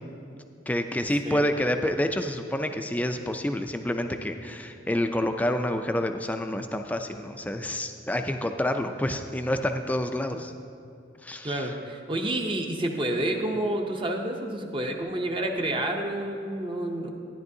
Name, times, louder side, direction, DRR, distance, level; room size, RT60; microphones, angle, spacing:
voice 1, 0.7-10.5 11.2-11.7, left 1 dB, 10° left, 6 dB, 0.4 m, -28 dB
voice 2, 11.4-17.1, right 1 dB, 25° right, 2 dB, 0.7 m, -29 dB
13.0 x 10.0 x 2.7 m, 2.5 s
head